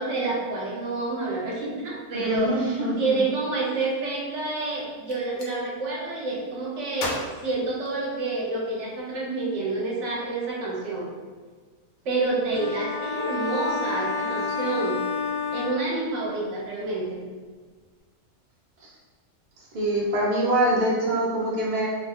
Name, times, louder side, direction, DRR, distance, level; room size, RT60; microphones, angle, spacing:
voice 1, 0.0-7.2 7.4-11.1 12.0-15.0 15.5-17.2, right 2 dB, 65° right, -3 dB, 1.0 m, -28 dB
voice 2, 2.1-3.2 18.8-18.9 19.7-21.9, right 1 dB, 50° right, -5 dB, 0.6 m, -24 dB
Gunshot gunfire, 5.0-5.5 6.9-8.4, left 2 dB, 85° left, 1.1 m, -35 dB
sound 1, 12.5-16.4, left 5 dB, 60° left, 0.7 m, -30 dB
2.7 x 2.2 x 3.5 m, 1.5 s
omnidirectional pair, 1.4 m